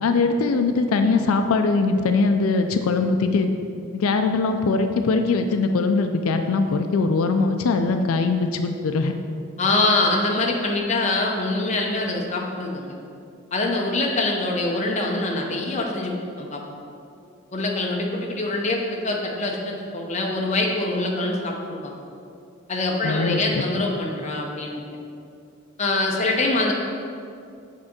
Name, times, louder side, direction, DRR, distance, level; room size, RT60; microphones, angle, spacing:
voice 1, 0.0-3.5 3.9-9.1 23.0-23.4, left 3 dB, 90° left, 6 dB, 0.4 m, -21 dB
voice 2, 9.6-12.9 13.5-16.6 17.5-21.9 22.7-24.8 25.8-26.7, left 2 dB, 35° left, 0 dB, 0.7 m, -24 dB
6.5 x 3.7 x 5.9 m, 2.5 s
head